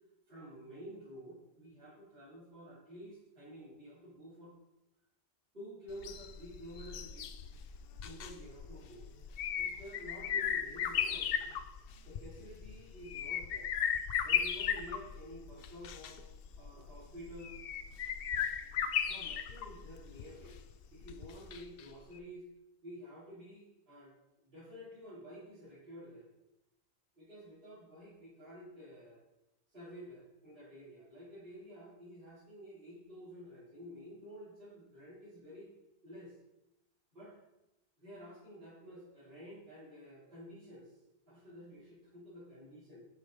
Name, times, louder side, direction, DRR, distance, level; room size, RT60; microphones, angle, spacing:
voice 1, 0.3-4.5 5.5-7.6 8.0-9.1 9.6-11.5 12.0-13.7 14.2-16.2 16.6-17.6 19.0-20.6 20.9-22.5 22.8-24.1 24.4-26.3 27.2-29.2 29.7-35.7 36.0-36.4 37.1-37.4 38.0-41.0 41.3-43.0, equal, 55° right, -14 dB, 3.7 m, -51 dB
sound 1, 5.9-21.8 22.1-22.2, left 8 dB, 65° left, 0.7 m, -37 dB
8.2 x 5.3 x 4.6 m, 0.93 s
omnidirectional pair, 1.1 m